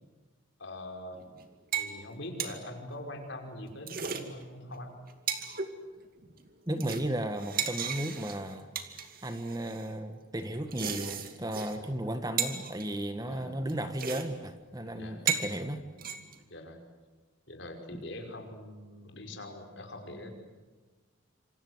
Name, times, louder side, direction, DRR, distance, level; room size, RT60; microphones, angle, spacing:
voice 1, 0.6-1.2 1.7-5.0 11.7-11.9 13.3-13.5 14.9-15.2 16.5-16.8 17.5-20.3, left 1 dB, 60° left, 4 dB, 5.5 m, -43 dB
sound 1, 1.1-1.4 1.7-1.9 2.2-2.6 3.7-4.2 4.7-4.8 5.1-5.7 6.2-6.5 6.8-9.9 10.5-11.8 12.0-12.1 12.4-12.9 13.7-13.8 14.0-14.2 14.5-14.6 15.1-15.5 16.0-16.4, right 7 dB, 45° right, 2.4 m, -35 dB
voice 2, 6.7-8.7 8.9-15.8 17.9-18.0, right 1 dB, 20° right, 9 dB, 1.5 m, -35 dB
27.5 x 27.0 x 8.0 m, 1.3 s
head